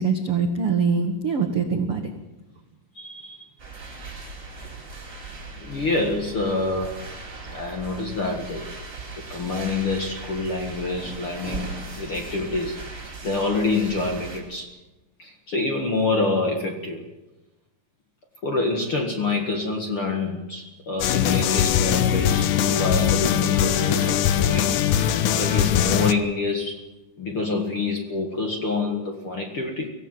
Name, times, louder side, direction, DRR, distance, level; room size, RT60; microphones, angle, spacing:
voice 1, 0.0-2.1, right 5 dB, 70° right, 5 dB, 1.3 m, -23 dB
voice 2, 2.9-3.5 5.6-7.0 7.5-8.7 9.3-12.8 13.2-14.7 15.2-17.0 18.4-26.8 27.2-29.9, left 3 dB, 45° left, 3 dB, 1.8 m, -27 dB
sound 1, 3.6-14.4, right 3 dB, 25° right, 5.0 m, -38 dB
sound 2, 21.0-26.1, left 9 dB, 90° left, 1.8 m, -21 dB
24.5 x 16.0 x 7.7 m, 1.1 s
omnidirectional pair, 5.0 m